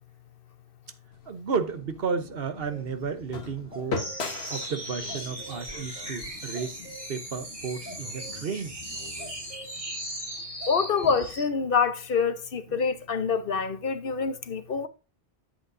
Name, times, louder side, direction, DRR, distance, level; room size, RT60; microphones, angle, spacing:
sound 1, 1.1-7.2, left 4 dB, 85° left, 1.5 m, -39 dB
voice 1, 1.3-4.0 4.5-6.8 7.1-8.7 9.0-9.2 11.0-11.1, right 5 dB, 70° right, 1.2 m, -32 dB
sound 2, 2.7-2.9 3.7-5.6 6.5-7.1 7.8-8.6 9.0-9.8 10.3-10.4 10.6-11.1, right 2 dB, 10° right, 2.7 m, -45 dB
sound 3, 3.9-11.5, right 1 dB, 30° right, 2.8 m, -38 dB
voice 2, 10.7-14.9, left 5 dB, 60° left, 1.1 m, -26 dB
10.0 x 8.1 x 2.6 m
omnidirectional pair, 1.0 m